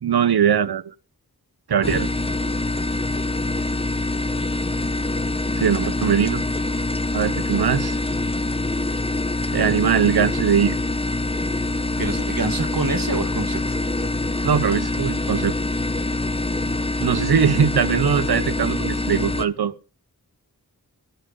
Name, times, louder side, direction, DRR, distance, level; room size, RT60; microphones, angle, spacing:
voice 1, 0.0-0.9 1.7-2.1 5.6-6.4 7.1-8.0 9.5-10.8 14.4-15.5 17.0-19.8, right 8 dB, 75° right, 0.7 m, -20 dB
sound 1, 1.8-19.4, left 2 dB, 15° left, 0.8 m, -25 dB
voice 2, 12.0-13.8, right 3 dB, 60° right, 1.6 m, -26 dB
19.5 x 10.5 x 3.8 m
wide cardioid pair, 45°, 39 cm